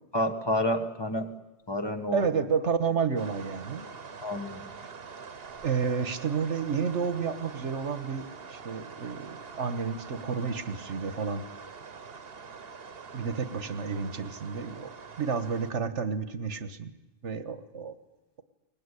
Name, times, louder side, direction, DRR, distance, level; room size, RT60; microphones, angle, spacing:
voice 1, 0.1-1.3 1.7-2.3 4.2-4.6, left 1 dB, 20° left, 4 dB, 1.6 m, -29 dB
voice 2, 2.1-3.9 4.8-4.9 5.6-11.5 13.1-14.9 15.2-16.9 17.2-17.9, right 6 dB, 90° right, 11 dB, 1.7 m, -30 dB
sound 1, 3.2-15.7, right 5 dB, 55° right, 1.4 m, -45 dB
23.0 x 20.0 x 10.0 m, 1.0 s
omnidirectional pair, 1.2 m